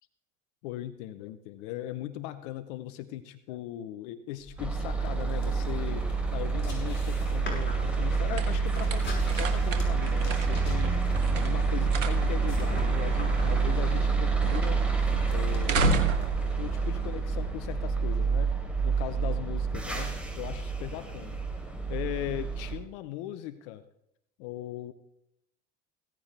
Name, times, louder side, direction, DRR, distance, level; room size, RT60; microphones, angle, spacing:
voice 1, 0.6-11.0 11.3-14.8 15.3-16.2 16.6-18.6 18.8-23.8 24.4-24.9, left 13 dB, 65° left, 11 dB, 0.9 m, -39 dB
sound 1, 4.4-17.1, left 1 dB, 30° left, 5.5 m, -43 dB
sound 2, 4.6-22.7, right 4 dB, 5° right, 3.6 m, -28 dB
sound 3, 7.1-17.7, right 5 dB, 85° right, 1.4 m, -34 dB
16.0 x 15.0 x 3.4 m, 0.78 s
hypercardioid pair, 70°, 37 cm